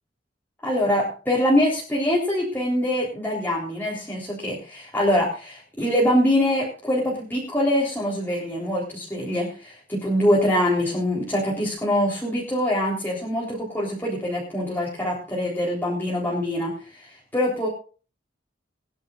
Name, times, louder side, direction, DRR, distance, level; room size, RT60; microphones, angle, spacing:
voice 1, 0.6-17.7, left 1 dB, 10° left, -5 dB, 3.8 m, -24 dB
23.0 x 10.5 x 2.5 m, 0.37 s
head